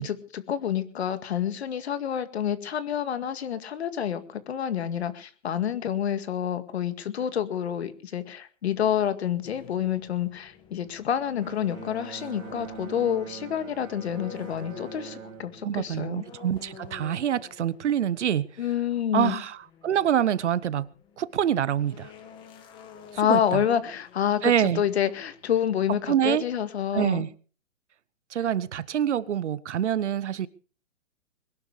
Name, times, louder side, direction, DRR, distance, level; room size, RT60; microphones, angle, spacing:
voice 1, 0.0-16.2 18.6-19.4 23.2-27.2, left 9 dB, 55° left, 2.1 m, -28 dB
sound 1, 9.4-25.9, left 8 dB, 10° left, 1.3 m, -49 dB
Bowed string instrument, 11.4-16.9, right 7 dB, 85° right, 2.0 m, -44 dB
voice 2, 15.6-18.5 19.1-19.6 19.8-20.9 21.2-22.1 23.3-23.6 24.4-24.8 26.1-26.4 26.9-27.3 28.3-30.5, right 10 dB, 65° right, 1.0 m, -25 dB
22.0 x 12.0 x 5.0 m
hypercardioid pair, 170°, 38 cm